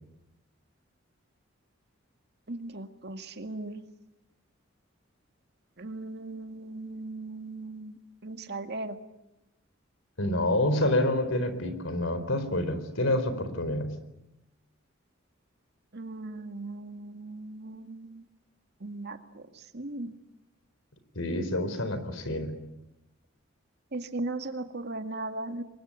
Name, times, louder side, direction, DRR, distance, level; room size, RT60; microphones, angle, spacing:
voice 1, 2.5-3.8 5.8-8.0 8.2-9.0 15.9-18.2 18.8-19.4 19.7-20.1 23.9-25.6, right 2 dB, 55° right, 7 dB, 2.0 m, -37 dB
voice 2, 10.2-13.9 21.2-22.6, left 1 dB, 80° left, 11 dB, 4.2 m, -28 dB
29.0 x 23.0 x 8.5 m, 0.91 s
head